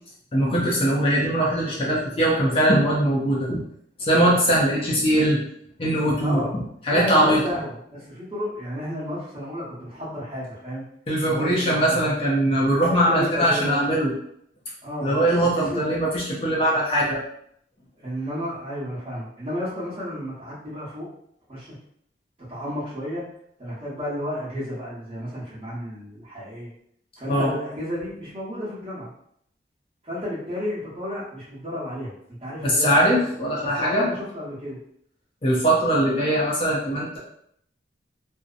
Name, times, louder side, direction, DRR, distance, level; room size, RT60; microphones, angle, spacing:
voice 1, 0.3-3.6 4.0-5.4 5.8-6.4 6.8-7.4 11.1-14.1 15.0-17.2 27.3-27.5 32.6-34.1 35.4-37.2, right 1 dB, 30° left, -4 dB, 0.5 m, -21 dB
voice 2, 6.2-6.5 6.9-10.8 11.3-12.1 12.7-13.8 14.8-16.0 18.0-21.1 21.5-21.7 22.5-23.2 23.6-26.7 27.2-29.1 30.0-33.3 33.6-34.8, equal, 30° right, -8 dB, 0.9 m, -32 dB
2.6 x 2.0 x 2.4 m, 0.71 s
head